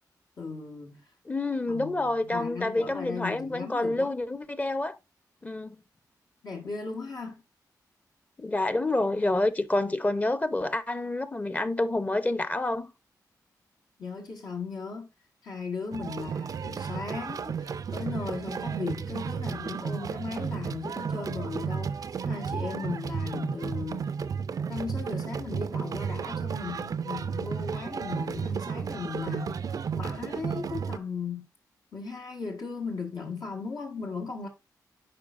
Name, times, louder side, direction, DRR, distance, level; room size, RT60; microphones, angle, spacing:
voice 1, 0.4-1.0 1.7-4.1 6.4-7.4 14.0-15.1 15.4-24.1 24.7-29.7 29.9-31.4 31.9-34.5, left 4 dB, 70° left, 1.5 m, -37 dB
voice 2, 1.3-5.0 5.4-5.8 8.4-12.9, left 2 dB, 20° left, 0.7 m, -28 dB
sound 1, 15.9-31.0, right 6 dB, 55° right, 0.4 m, -33 dB
9.7 x 4.6 x 2.5 m
cardioid pair, 70°, 7 cm